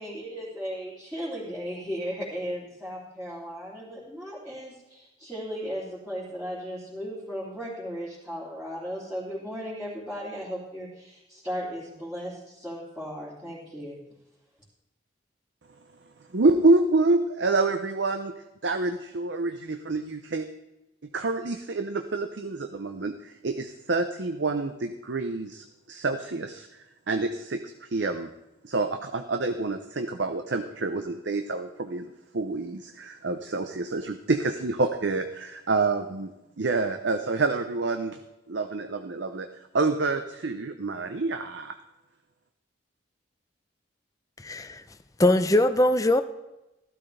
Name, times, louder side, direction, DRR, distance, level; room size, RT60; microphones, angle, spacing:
voice 1, 0.0-14.0, equal, 5° right, -11 dB, 3.0 m, -36 dB
voice 2, 16.3-18.3 18.6-20.5 21.1-26.7 27.1-28.3 28.6-36.3 36.6-38.2 38.5-39.5 39.7-41.8, right 3 dB, 70° right, 7 dB, 0.7 m, -27 dB
voice 3, 44.4-44.8 45.2-46.2, left 1 dB, 20° left, 10 dB, 0.6 m, -21 dB
15.0 x 12.5 x 3.3 m, 0.96 s
head